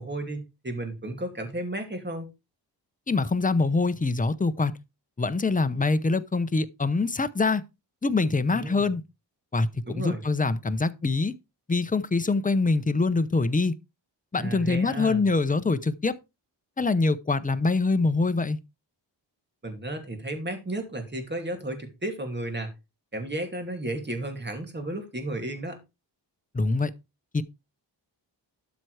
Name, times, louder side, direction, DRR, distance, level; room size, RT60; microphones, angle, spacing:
voice 1, 0.0-2.3 8.5-8.9 9.9-10.2 14.4-15.2 19.6-22.7 23.1-25.8, right 1 dB, 25° right, 2.6 m, -33 dB
voice 2, 3.1-4.7 5.2-7.6 8.0-9.0 9.5-9.7 9.9-11.3 11.7-13.7 14.3-16.2 16.8-18.6 26.5-26.9 27.3-27.4, left 3 dB, 20° left, 0.7 m, -24 dB
12.5 x 4.5 x 4.8 m
wide cardioid pair, 135°, 43 cm